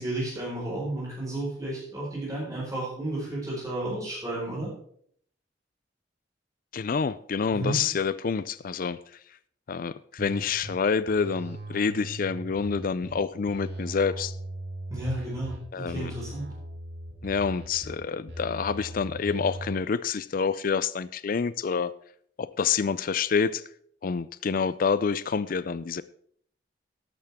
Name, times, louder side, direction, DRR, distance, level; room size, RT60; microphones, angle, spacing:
voice 1, 0.0-4.7 7.5-7.8 14.9-16.5, right 1 dB, 20° right, 4.9 m, -32 dB
voice 2, 6.7-9.0 9.7-14.3 15.7-16.1 17.2-21.9 22.4-23.6 24.0-26.0, left 5 dB, 50° left, 0.4 m, -27 dB
sound 1, 10.2-10.7 11.1-13.1 13.5-15.6 15.9-17.9 18.3-19.8, right 1 dB, 80° right, 4.1 m, -38 dB
13.0 x 12.0 x 3.6 m
head